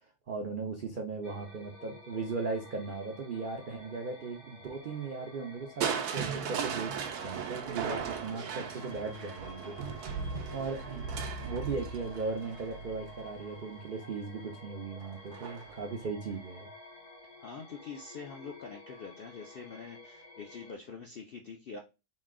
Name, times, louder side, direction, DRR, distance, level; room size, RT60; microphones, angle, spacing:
voice 1, 0.3-11.0 11.4-16.7, right 4 dB, 65° right, 1 dB, 0.5 m, -38 dB
sound 1, 1.2-20.7, left 2 dB, 85° left, 1.7 m, -51 dB
Crushing, 5.8-13.8 15.3-15.8 16.3-16.4, right 6 dB, 80° right, 1.1 m, -37 dB
voice 2, 17.4-21.8, left 5 dB, 65° left, 2 dB, 0.5 m, -45 dB
4.1 x 2.2 x 3.6 m, 0.27 s
omnidirectional pair, 1.6 m